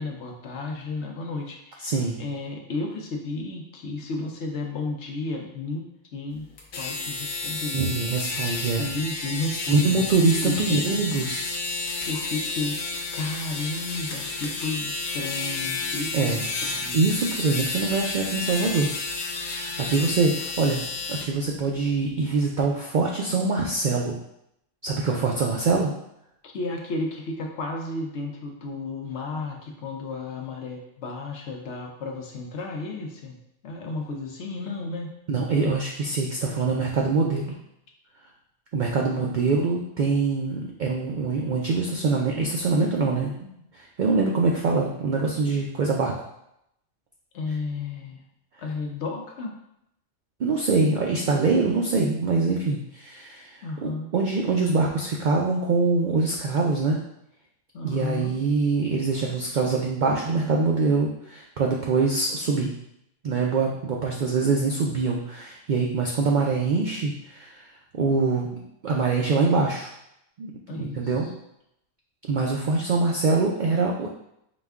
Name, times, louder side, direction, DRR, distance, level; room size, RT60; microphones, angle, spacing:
voice 1, 0.0-5.9 6.1-6.5 6.8-7.8 8.8-10.8 12.1-12.8 13.1-17.1 26.4-33.4 33.6-35.1 39.1-39.4 47.3-48.2 48.6-49.5 53.6-54.1 57.7-58.3 70.7-71.3, left 3 dB, 65° left, 1 dB, 0.9 m, -33 dB
voice 2, 1.8-2.2 7.7-8.8 9.7-11.5 16.1-16.4 16.7-18.9 19.3-20.8 21.1-24.2 24.8-25.9 35.3-37.5 38.7-46.1 50.4-57.0 57.8-62.7 63.2-68.5 68.8-69.9 70.4-71.3 72.3-74.1, right 4 dB, 70° right, -1 dB, 0.4 m, -24 dB
sound 1, 6.6-21.3, left 3 dB, 90° left, 1.1 m, -31 dB
5.0 x 2.2 x 3.5 m, 0.79 s
omnidirectional pair, 1.3 m